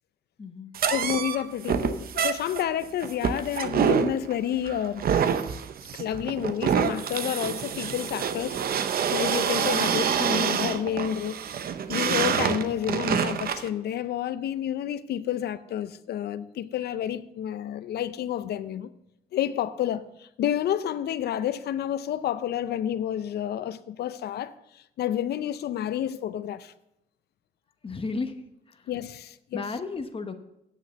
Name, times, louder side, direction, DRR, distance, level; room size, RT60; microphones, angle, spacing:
voice 1, 0.4-0.7 27.8-28.9 29.5-30.3, left 3 dB, 35° left, 1.2 m, -34 dB
sound 1, 0.7-13.7, right 8 dB, 65° right, 0.7 m, -27 dB
voice 2, 0.9-5.0 5.9-8.6 9.1-11.5 11.9-18.9 19.3-24.5 25.0-26.7 28.9-29.7, left 10 dB, 75° left, 0.6 m, -30 dB
9.3 x 6.2 x 6.8 m
cardioid pair, 80°, 17 cm